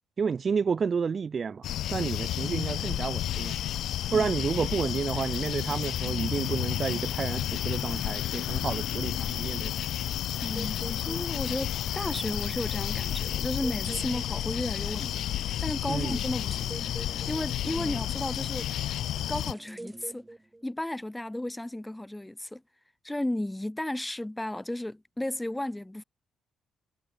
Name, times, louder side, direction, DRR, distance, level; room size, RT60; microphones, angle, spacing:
voice 1, 0.2-3.6 4.1-9.8 15.9-16.2, right 5 dB, 40° right, 0.5 m, -30 dB
sound 1, 1.6-19.5, left 12 dB, 75° left, 0.9 m, -31 dB
sound 2, 10.3-20.8, right 2 dB, 15° right, 3.1 m, -47 dB
voice 2, 10.4-15.3 15.6-16.7 17.3-18.7 19.3-20.3 20.6-22.6 23.0-26.0, left 1 dB, 10° left, 2.0 m, -34 dB
cardioid pair, 90°, 0 cm